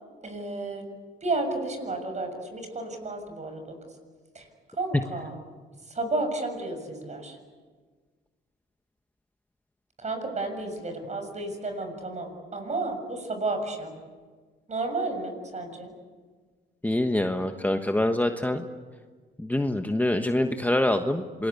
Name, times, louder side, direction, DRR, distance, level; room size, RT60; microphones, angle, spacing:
voice 1, 0.2-0.8 1.2-3.8 4.3-5.3 5.9-7.4 10.0-14.0 14.7-15.9, right 2 dB, 35° right, 6 dB, 6.8 m, -32 dB
voice 2, 16.8-18.7 19.4-21.5, left 1 dB, 10° left, 6 dB, 1.3 m, -25 dB
27.0 x 20.5 x 8.4 m, 1.5 s
cardioid pair, 90°, 20 cm